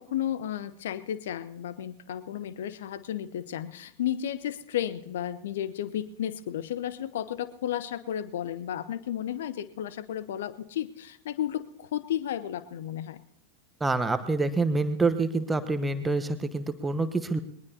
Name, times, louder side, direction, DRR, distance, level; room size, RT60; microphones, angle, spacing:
voice 1, 0.0-13.2, left 11 dB, 60° left, 15 dB, 0.8 m, -33 dB
voice 2, 13.8-17.4, right 3 dB, 10° right, 10 dB, 1.0 m, -27 dB
22.0 x 19.5 x 2.8 m, 0.76 s
figure-of-eight pair, 90°, 0 cm